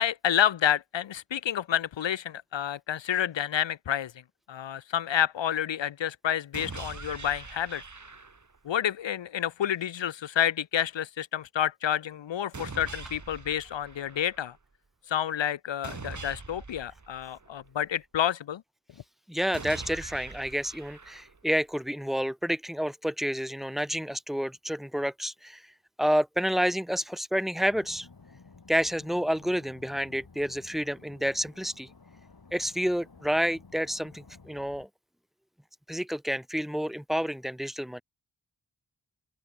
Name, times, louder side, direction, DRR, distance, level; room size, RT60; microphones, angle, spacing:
voice 1, 0.0-4.1 4.5-7.8 8.6-14.5 15.1-18.6, left 10 dB, 75° left, 0.7 m, -29 dB
sound 1, 6.5-8.6 12.5-14.6 15.8-17.9 19.5-21.6, right 4 dB, 40° right, 2.4 m, -43 dB
voice 2, 19.3-25.6 26.0-28.1 28.7-31.9 32.5-34.9 35.9-38.0, equal, ahead, 1.9 m, -29 dB
sound 2, 27.6-34.9, left 4 dB, 55° left, 4.0 m, -54 dB
open air
wide cardioid pair, 65°, 44 cm